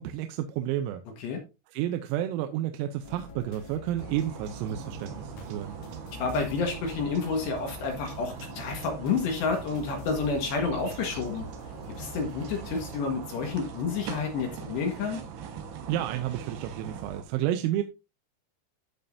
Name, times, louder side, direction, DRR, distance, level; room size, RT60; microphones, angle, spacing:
voice 1, 0.0-1.0 1.7-5.8 15.9-17.8, right 12 dB, 90° right, 3.4 m, -31 dB
sound 1, 3.0-12.9, left 2 dB, 85° left, 4.5 m, -46 dB
sound 2, 4.0-17.2, right 7 dB, 65° right, 2.7 m, -41 dB
voice 2, 6.2-11.5 12.0-15.2, left 5 dB, 65° left, 3.2 m, -30 dB
14.5 x 5.4 x 2.6 m
omnidirectional pair, 6.0 m